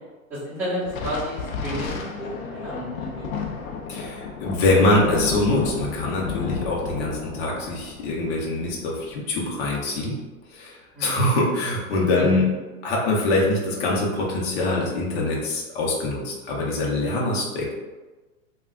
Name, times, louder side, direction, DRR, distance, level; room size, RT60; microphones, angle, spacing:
voice 1, 0.3-3.6 10.9-11.4 12.2-12.3 17.0-17.2, equal, 5° right, -12 dB, 1.1 m, -32 dB
Thunder, 0.9-9.6, left 5 dB, 75° left, 0.6 m, -33 dB
voice 2, 3.9-10.2 10.5-12.4 12.8-17.7, left 2 dB, 45° left, -3 dB, 0.8 m, -24 dB
3.4 x 2.3 x 2.3 m, 1.2 s
hypercardioid pair, 135°, 42 cm